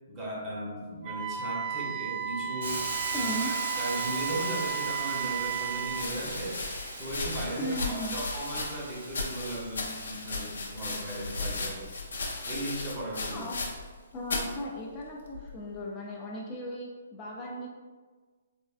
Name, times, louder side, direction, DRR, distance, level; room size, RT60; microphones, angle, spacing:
voice 1, 0.1-6.6 7.0-11.9 12.5-13.4, right 1 dB, 20° right, -5 dB, 0.8 m, -37 dB
Wind instrument woodwind instrument, 1.0-6.1, right 10 dB, 40° right, 0.4 m, -33 dB
Hiss, 2.6-12.5, right 1 dB, 85° right, 1.0 m, -40 dB
voice 2, 3.1-3.5 7.6-8.2 13.3-13.6 14.1-17.7, equal, 25° left, -3 dB, 0.4 m, -36 dB
sound 1, 5.9-14.0 14.2-14.6 15.3-15.7, left 3 dB, 80° left, 0.5 m, -36 dB
3.4 x 2.3 x 2.4 m, 1.4 s
hypercardioid pair, 145°, 0 cm